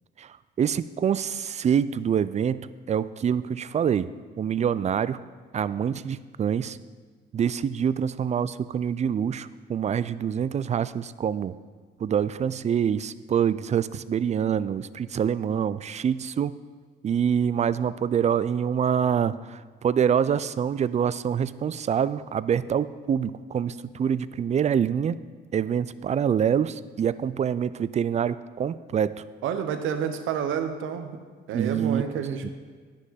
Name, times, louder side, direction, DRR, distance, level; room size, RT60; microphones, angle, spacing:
voice 1, 0.2-4.1 4.4-5.2 5.5-6.8 7.3-11.5 12.0-16.5 17.0-25.2 25.5-29.1 31.5-32.0 32.4-32.5, right 8 dB, 35° right, 16 dB, 0.4 m, -26 dB
voice 2, 29.4-31.2 31.5-32.5, right 8 dB, 85° right, 8 dB, 0.8 m, -29 dB
9.9 x 6.4 x 5.6 m, 1.5 s
cardioid pair, 90°, 20 cm